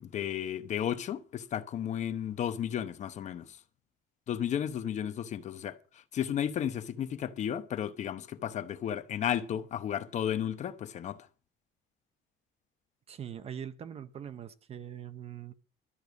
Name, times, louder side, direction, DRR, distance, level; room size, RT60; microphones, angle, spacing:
voice 1, 0.0-3.6 4.3-11.2, left 9 dB, 35° left, 0.9 m, -33 dB
voice 2, 13.1-15.5, right 9 dB, 30° right, 0.7 m, -42 dB
12.5 x 6.7 x 9.3 m
cardioid pair, 175°, 20 cm